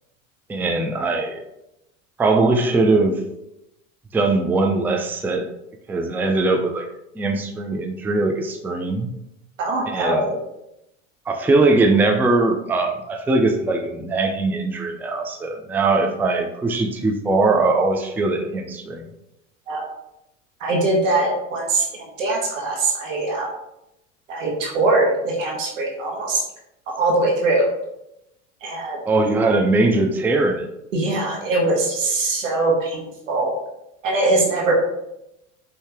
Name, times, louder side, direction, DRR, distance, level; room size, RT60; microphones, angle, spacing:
voice 1, 0.5-1.4 2.2-3.2 4.1-5.5 5.9-6.9 7.2-9.1 9.9-10.2 11.3-19.1 29.0-30.7, right 3 dB, 5° right, 3 dB, 0.4 m, -20 dB
voice 2, 9.6-10.4 19.7-19.8 20.6-23.5 24.3-26.4 27.0-27.7 28.6-29.0 30.9-33.5 34.0-34.7, right 2 dB, 75° right, -1 dB, 1.2 m, -22 dB
5.4 x 2.8 x 3.4 m, 0.86 s
hypercardioid pair, 75°, 39 cm